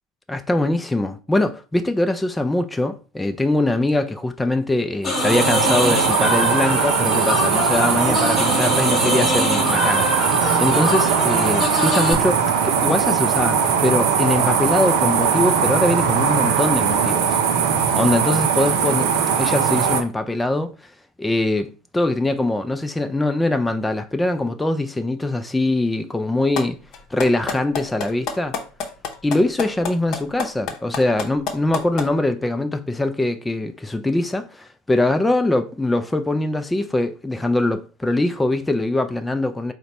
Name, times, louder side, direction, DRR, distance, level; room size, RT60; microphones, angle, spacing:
voice 1, 0.3-17.3 17.9-19.1 19.4-20.7 21.2-26.8 27.1-28.6 29.2-39.7, left 2 dB, 10° left, 0.4 m, -22 dB
sound 1, 5.0-12.1, left 3 dB, 30° left, 1.2 m, -24 dB
sound 2, 5.0-20.0, right 7 dB, 65° right, 0.5 m, -20 dB
sound 3, 26.6-26.7 26.9-32.1, left 6 dB, 50° left, 0.8 m, -26 dB
3.9 x 2.2 x 4.2 m
figure-of-eight pair, 75°, 0 cm